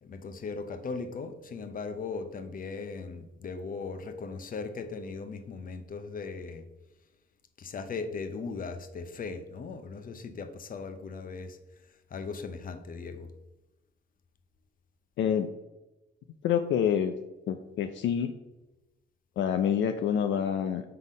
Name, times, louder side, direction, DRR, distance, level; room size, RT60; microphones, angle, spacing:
voice 1, 0.0-6.7 7.6-11.6 12.1-13.3, left 4 dB, 45° left, 8 dB, 0.8 m, -38 dB
voice 2, 15.2-15.5 16.4-17.1 17.5-18.3 19.4-20.8, left 8 dB, 70° left, 7 dB, 0.5 m, -27 dB
5.6 x 4.0 x 4.9 m, 1.0 s
cardioid pair, 90°, 20 cm